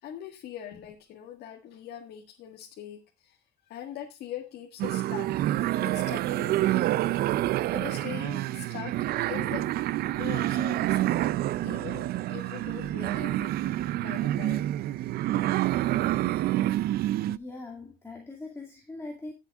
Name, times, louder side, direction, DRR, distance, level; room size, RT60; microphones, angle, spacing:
voice 1, 0.0-3.4 3.6-5.3 5.8-6.7 7.7-9.7 10.1-11.4 11.6-13.6 14.0-14.7, left 10 dB, 70° left, 1 dB, 1.7 m, -42 dB
sound 1, 4.8-17.4, right 14 dB, 65° right, 0.4 m, -28 dB
voice 2, 17.3-19.3, left 2 dB, 15° left, -1 dB, 2.3 m, -41 dB
18.5 x 7.3 x 2.4 m, 0.24 s
cardioid pair, 110°, 17 cm